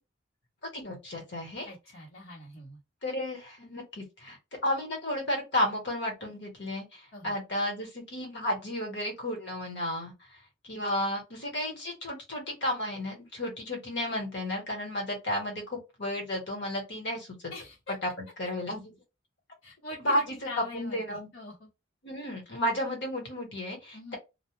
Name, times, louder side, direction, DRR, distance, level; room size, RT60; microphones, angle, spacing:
voice 1, 0.7-1.7 3.0-17.5 17.9-18.8 20.0-21.3 22.0-24.2, left 1 dB, 60° left, 1.2 m, -33 dB
voice 2, 1.6-2.8 7.1-7.3 17.5-17.9 19.6-21.7 23.9-24.2, left 2 dB, 90° left, 1.1 m, -43 dB
2.3 x 2.1 x 3.1 m
head